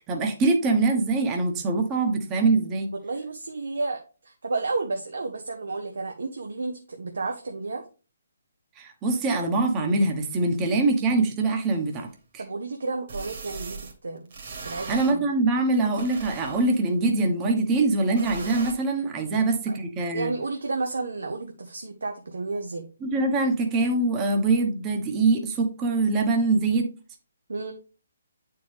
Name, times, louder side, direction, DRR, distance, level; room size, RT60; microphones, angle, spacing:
voice 1, 0.0-2.9 8.8-12.1 12.3-12.4 14.9-20.3 23.0-26.9, right 3 dB, 20° right, 3 dB, 1.1 m, -23 dB
voice 2, 3.0-7.8 12.4-14.3 14.6-15.3 19.3-19.4 19.7-19.8 20.1-22.9 27.5-27.7, right 3 dB, 70° right, 4 dB, 0.9 m, -32 dB
sound 1, 11.9-12.0 13.1-13.9 14.3-15.1 15.7-16.9 18.2-18.7, right 4 dB, 50° right, 1.9 m, -39 dB
9.1 x 4.5 x 3.4 m, 0.35 s
figure-of-eight pair, 140°, 0 cm